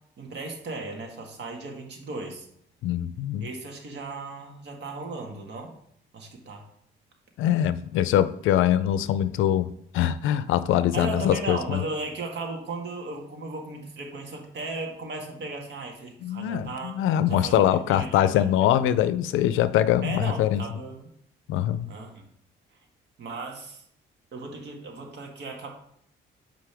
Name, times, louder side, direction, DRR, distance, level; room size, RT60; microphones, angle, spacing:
voice 1, 0.2-2.5 3.4-5.7 6.1-6.6 10.9-17.0 17.3-18.4 20.0-21.1 21.9-22.3 23.2-23.8 24.3-25.7, right 3 dB, 60° right, 2 dB, 1.7 m, -36 dB
voice 2, 2.8-3.5 7.4-11.8 16.2-20.6 21.5-21.9, left 11 dB, 90° left, 14 dB, 0.5 m, -23 dB
7.5 x 5.1 x 3.4 m, 0.69 s
cardioid pair, 90°, 20 cm